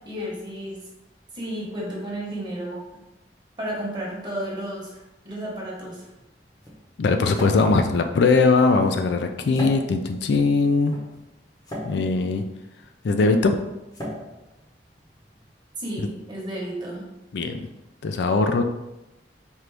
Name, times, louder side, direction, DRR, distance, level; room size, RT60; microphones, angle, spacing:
voice 1, 0.0-0.8 1.3-2.8 3.6-6.1 15.8-17.1, right 1 dB, 25° right, -4 dB, 1.0 m, -32 dB
sound 1, 5.7-15.5, equal, 25° left, 0.8 m, -39 dB
voice 2, 7.0-10.9 11.8-12.4 13.0-13.5 16.0-16.1 17.3-17.7 18.0-18.6, left 3 dB, 75° left, 6 dB, 0.4 m, -20 dB
4.4 x 2.5 x 3.3 m, 0.95 s
head